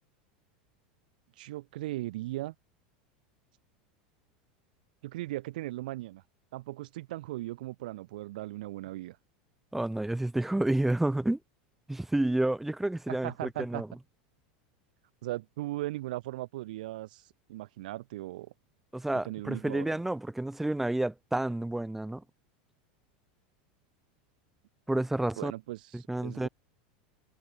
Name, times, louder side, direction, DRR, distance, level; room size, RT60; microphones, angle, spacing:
voice 1, 1.4-2.5 5.0-6.2 6.5-9.2 13.1-13.8 15.2-17.2 17.5-18.5 19.2-19.9 25.4-26.5, right 17 dB, 80° right, 2.4 m, -38 dB
voice 2, 9.7-11.4 11.9-13.9 18.9-22.2 24.9-25.5 25.9-26.5, right 1 dB, 5° right, 2.6 m, -30 dB
supercardioid pair, 135°, 5 cm